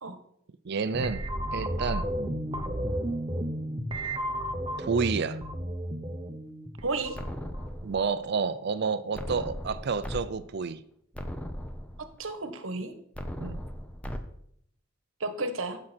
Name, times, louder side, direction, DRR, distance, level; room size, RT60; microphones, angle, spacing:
voice 1, 0.6-1.3 1.5-2.1 4.8-5.4 7.8-10.8 13.4-13.6, right 5 dB, 55° right, 14 dB, 0.5 m, -29 dB
sound 1, 0.9-7.8, right 1 dB, 25° right, 1.0 m, -33 dB
voice 2, 6.8-7.2 12.0-12.9 15.2-15.8, right 3 dB, 80° right, 9 dB, 1.2 m, -32 dB
sound 2, 7.1-8.2 9.1-10.2 10.6-10.7 11.1-12.2 13.1-14.2, equal, 5° left, 0.8 m, -37 dB
14.5 x 6.2 x 4.3 m, 0.71 s
head